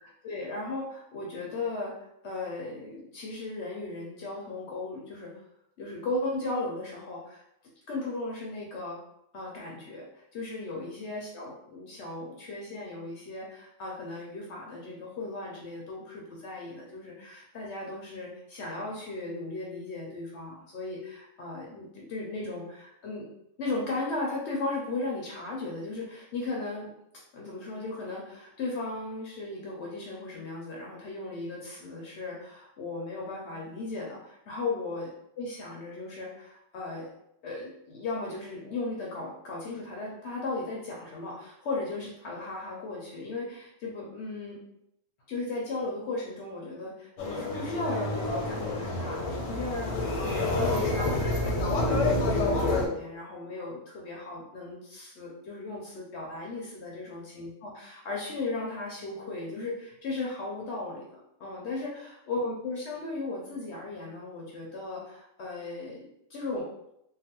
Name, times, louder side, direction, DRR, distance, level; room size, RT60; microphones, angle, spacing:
voice 1, 0.0-5.3 5.8-7.4 7.9-9.0 9.3-23.3 23.6-26.9 27.3-35.1 35.4-37.1 37.4-44.6 45.3-66.7, left 2 dB, 65° left, -3 dB, 0.8 m, -36 dB
sound 1, 47.2-52.9, left 2 dB, 90° left, 1.1 m, -28 dB
3.1 x 2.2 x 2.8 m, 0.78 s
omnidirectional pair, 1.3 m